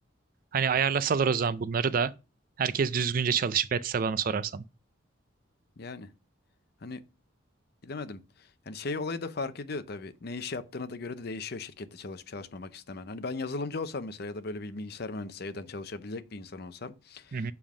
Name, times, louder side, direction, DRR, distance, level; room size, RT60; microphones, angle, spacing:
voice 1, 0.5-2.1 2.6-4.6 17.3-17.5, right 6 dB, 45° right, 0.4 m, -27 dB
voice 2, 5.8-6.1 6.8-7.0 7.8-17.5, left 3 dB, 50° left, 0.6 m, -37 dB
7.0 x 3.5 x 6.1 m
head